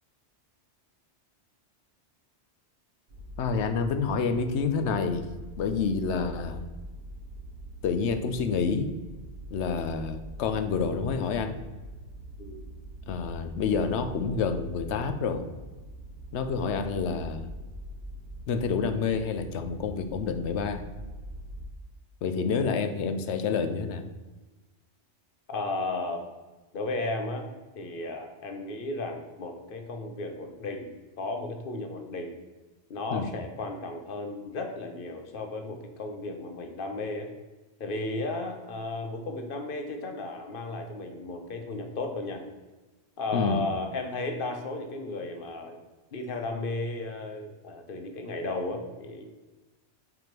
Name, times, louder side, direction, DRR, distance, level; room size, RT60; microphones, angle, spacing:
sound 1, 3.1-21.7, equal, 45° right, 1.5 m, -43 dB
voice 1, 3.4-5.3 5.6-6.7 7.8-8.9 9.5-11.6 13.1-15.5 16.3-17.5 18.5-20.8 22.2-24.0 33.1-33.3 43.3-43.6, left 5 dB, 80° left, 8 dB, 0.9 m, -28 dB
voice 2, 25.5-26.3 26.7-30.9 31.2-32.3 32.9-37.3 37.8-42.4 43.2-45.8 46.1-49.3, left 2 dB, 55° left, 5 dB, 1.0 m, -34 dB
5.9 x 3.6 x 5.8 m, 1.2 s
omnidirectional pair, 1.2 m